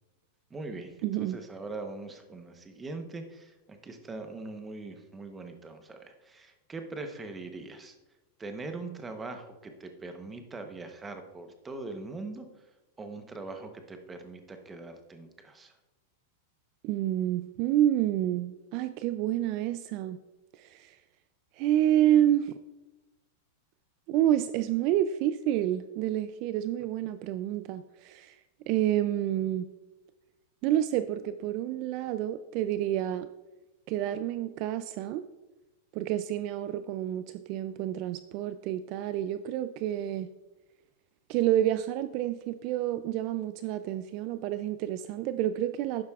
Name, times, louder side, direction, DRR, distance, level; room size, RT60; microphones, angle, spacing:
voice 1, 0.5-7.9 8.4-12.5 13.0-15.7, right 3 dB, 15° right, 6 dB, 0.9 m, -41 dB
voice 2, 1.0-1.4 16.8-20.2 20.5-21.0 21.6-22.6 24.1-28.4 28.7-29.7 30.6-33.3 33.9-35.2 35.9-40.3 41.3-46.0, right 12 dB, 45° right, 11 dB, 0.3 m, -29 dB
11.5 x 9.2 x 2.4 m, 1.1 s
supercardioid pair, 140°, 0 cm